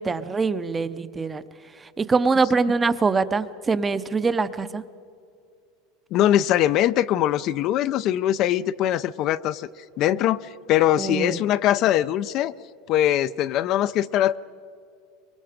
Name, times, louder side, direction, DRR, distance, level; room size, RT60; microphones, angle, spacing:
voice 1, 0.0-1.4 1.8-4.8 11.0-11.4, right 4 dB, 15° right, 13 dB, 0.6 m, -23 dB
voice 2, 6.1-9.7 10.0-12.5 12.9-14.4, left 12 dB, 40° left, 15 dB, 0.4 m, -22 dB
24.0 x 22.5 x 5.1 m, 2.4 s
supercardioid pair, 150°, 0 cm